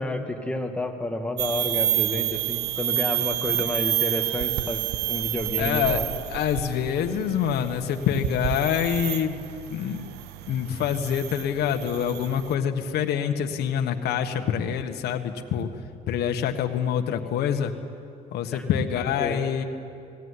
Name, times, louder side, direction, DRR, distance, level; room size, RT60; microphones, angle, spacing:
voice 1, 0.0-6.1 18.5-18.6 19.2-19.4, left 1 dB, 5° left, 3 dB, 2.0 m, -30 dB
sound 1, 1.4-12.5, right 14 dB, 80° right, 0.7 m, -29 dB
voice 2, 5.6-6.0 6.3-9.4 9.7-10.0 10.5-15.7 16.1-17.7 18.3-19.6, left 8 dB, 75° left, 5 dB, 1.5 m, -26 dB
19.5 x 16.5 x 9.8 m, 2.5 s
cardioid pair, 110°, 17 cm